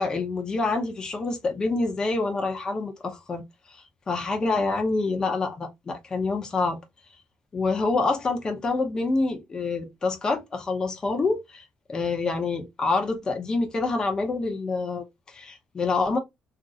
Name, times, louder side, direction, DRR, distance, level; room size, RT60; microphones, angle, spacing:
voice 1, 0.0-3.4 3.7-6.8 7.5-16.2, left 3 dB, 30° left, 0.8 m, -27 dB
2.9 x 2.5 x 2.6 m
cardioid pair, 105°, 2 cm